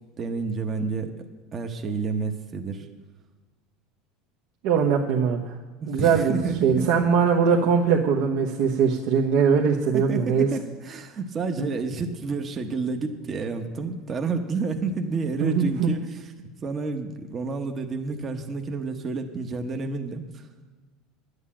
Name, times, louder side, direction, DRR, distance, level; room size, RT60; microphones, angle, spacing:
voice 1, 0.2-1.1 1.5-2.9 5.8-7.1 9.9-20.5, right 4 dB, 25° right, 5 dB, 1.0 m, -30 dB
voice 2, 4.6-5.6 5.9-6.3 6.6-10.5 11.6-11.7 15.4-15.9, right 6 dB, 60° right, -1 dB, 1.1 m, -21 dB
11.5 x 8.1 x 8.8 m, 1.3 s
supercardioid pair, 155°, 0 cm